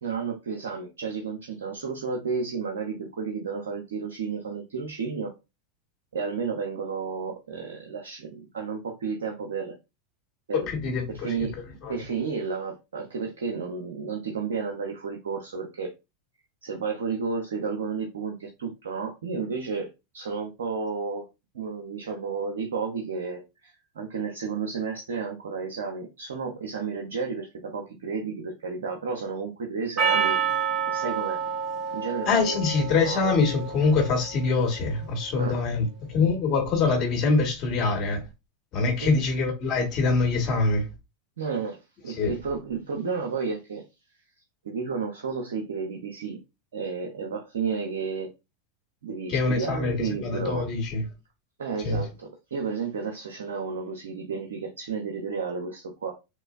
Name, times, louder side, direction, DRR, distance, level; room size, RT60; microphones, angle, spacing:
voice 1, 0.0-5.3 6.1-9.8 10.5-10.7 11.1-11.6 11.9-15.9 16.6-19.9 20.1-21.3 21.5-30.4 30.9-31.4 31.9-32.6 33.0-33.3 35.4-35.6 39.0-39.2 41.4-43.8 44.6-46.4 46.7-48.3 49.0-50.7 51.6-56.1, right 5 dB, 80° right, 0.7 m, -32 dB
voice 2, 10.7-11.5 11.8-12.0 32.2-38.2 38.7-40.9 42.1-42.3 49.3-51.0 51.8-52.0, left 4 dB, 45° left, 1.5 m, -24 dB
Percussion, 30.0-34.5, right 6 dB, 35° right, 1.3 m, -28 dB
3.8 x 2.6 x 2.4 m
hypercardioid pair, 100°, 0 cm